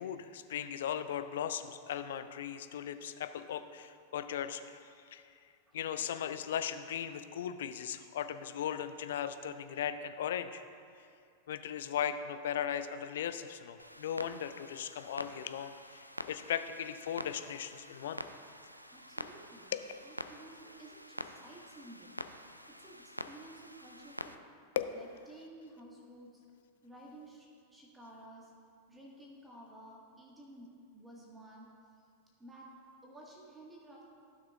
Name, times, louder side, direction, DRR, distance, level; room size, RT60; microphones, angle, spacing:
voice 1, 0.0-4.8 5.1-5.2 5.7-10.6 11.5-18.2 19.7-19.8 24.8-24.9, left 9 dB, 60° left, 10 dB, 0.4 m, -37 dB
Clock, 13.8-24.4, equal, 90° right, 0.3 m, -47 dB
voice 2, 18.9-19.7 20.0-22.1 22.7-24.4 24.9-26.4 26.8-28.5 28.9-31.7 32.4-32.7 33.0-34.0, right 1 dB, 10° right, -3 dB, 1.6 m, -53 dB
15.5 x 6.3 x 2.4 m, 2.4 s
figure-of-eight pair, 90°, 0 cm